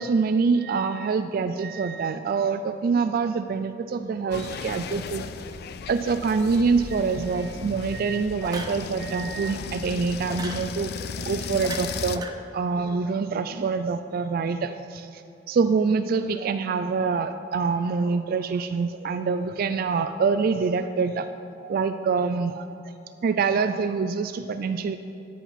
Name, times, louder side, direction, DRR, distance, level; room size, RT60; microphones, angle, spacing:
voice 1, 0.0-5.2 5.9-12.3 12.5-15.2 15.5-21.3 21.6-22.7 23.2-25.0, right 5 dB, 55° right, 9 dB, 0.3 m, -25 dB
sound 1, 4.3-12.2, left 5 dB, 55° left, 0.4 m, -36 dB
sound 2, 7.3-7.6 8.4-8.8 10.2-10.6 11.6-12.3, right 2 dB, 20° right, 0.7 m, -36 dB
9.8 x 8.3 x 4.1 m, 2.8 s
head